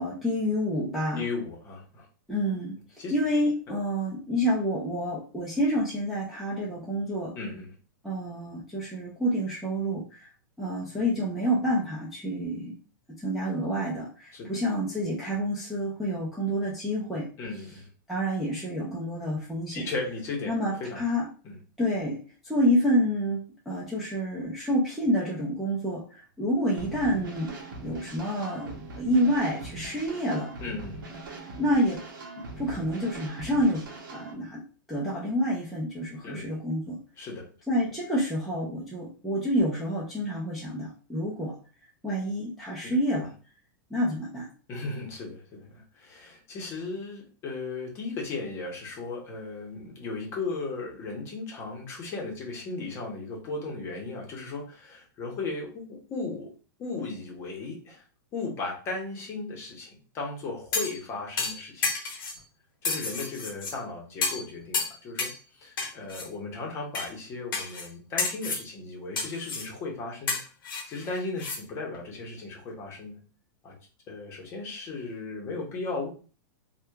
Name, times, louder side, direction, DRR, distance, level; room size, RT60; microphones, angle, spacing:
voice 1, 0.0-1.2 2.3-2.8 3.1-7.3 8.0-10.3 10.6-12.7 13.2-17.3 18.1-19.9 20.5-21.3 21.8-22.2 22.4-27.5 27.8-30.5 31.6-32.0 32.6-33.9 34.1-34.6 34.9-37.0 37.7-41.5 42.0-43.3 43.9-44.5, equal, ahead, -8 dB, 0.4 m, -28 dB
voice 2, 1.2-2.1 3.0-3.1 3.7-3.8 7.4-7.7 14.3-14.5 17.4-17.9 19.7-20.5 20.8-21.0 21.4-21.6 30.6-31.0 36.2-36.5 37.2-37.5 42.8-43.0 44.7-56.5 56.8-58.0 58.3-61.9 62.8-70.4 70.9-73.2 73.6-73.8 74.1-76.1, left 3 dB, 25° left, -1 dB, 0.7 m, -36 dB
sound 1, 26.8-34.3, right 2 dB, 70° right, 0.8 m, -41 dB
sound 2, 60.7-61.0 61.4-62.4 62.8-63.7 64.2-64.5 64.7-65.4 65.8-66.3 66.9-67.1 67.5-67.9 68.2-68.7 69.2-69.7 70.3-71.6 71.9-72.0, left 4 dB, 90° left, 0.8 m, -31 dB
2.8 x 2.1 x 2.2 m, 0.37 s
supercardioid pair, 160°, 11 cm